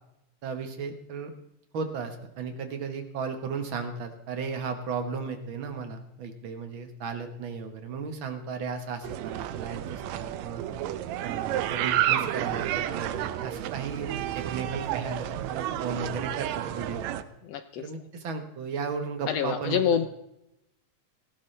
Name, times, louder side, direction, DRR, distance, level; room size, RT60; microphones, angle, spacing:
voice 1, 0.4-1.3 1.7-10.6 11.2-17.3 17.8-19.8, right 5 dB, 50° right, 6 dB, 1.8 m, -35 dB
sound 1, 9.0-17.2, right 12 dB, 75° right, 1.9 m, -31 dB
voice 2, 17.4-17.8 19.3-20.1, left 8 dB, 75° left, 10 dB, 1.6 m, -26 dB
18.0 x 16.0 x 3.3 m, 0.83 s
omnidirectional pair, 3.3 m